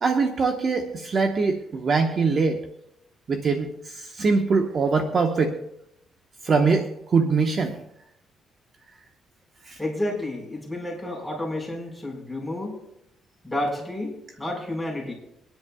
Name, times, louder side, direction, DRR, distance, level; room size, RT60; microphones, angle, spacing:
voice 1, 0.0-2.6 3.3-5.6 6.4-7.8 9.7-9.8, right 4 dB, 45° right, 3 dB, 1.2 m, -23 dB
voice 2, 9.8-12.8 13.4-15.1, left 1 dB, ahead, -3 dB, 4.9 m, -30 dB
23.5 x 10.5 x 2.4 m, 0.79 s
cardioid pair, 90°, 0 cm